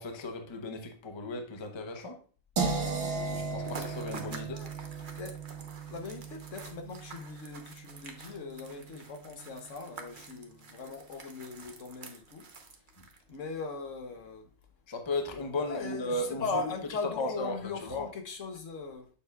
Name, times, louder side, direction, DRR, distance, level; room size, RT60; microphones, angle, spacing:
voice 1, 0.0-2.2 3.2-4.6 14.9-16.7 17.2-18.1, left 2 dB, 25° left, 0.7 m, -36 dB
sound 1, 2.6-8.5, right 4 dB, 70° right, 1.7 m, -36 dB
sound 2, 3.6-13.4, right 4 dB, 45° right, 1.0 m, -48 dB
voice 2, 5.9-12.5 13.3-14.5 15.6-19.1, left 4 dB, 65° left, 1.3 m, -39 dB
7.5 x 6.7 x 2.3 m
omnidirectional pair, 1.4 m